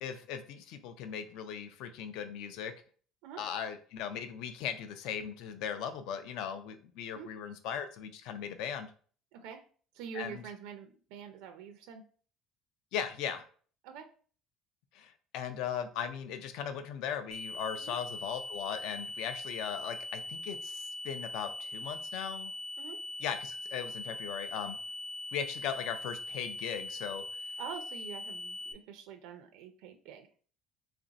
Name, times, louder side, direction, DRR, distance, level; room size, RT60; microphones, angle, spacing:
voice 1, 0.0-2.7 3.4-8.9 10.1-10.4 12.9-13.5 14.9-22.5 23.2-24.8 25.3-27.2, left 8 dB, 70° left, 9 dB, 0.4 m, -38 dB
voice 2, 9.3-9.7 9.9-12.0 13.8-14.1 17.8-18.0 22.8-23.0 27.6-30.3, right 7 dB, 80° right, 6 dB, 0.4 m, -45 dB
sound 1, 17.3-28.7, left 2 dB, 5° left, 0.5 m, -41 dB
3.2 x 2.5 x 3.9 m, 0.43 s
cardioid pair, 170°, 0 cm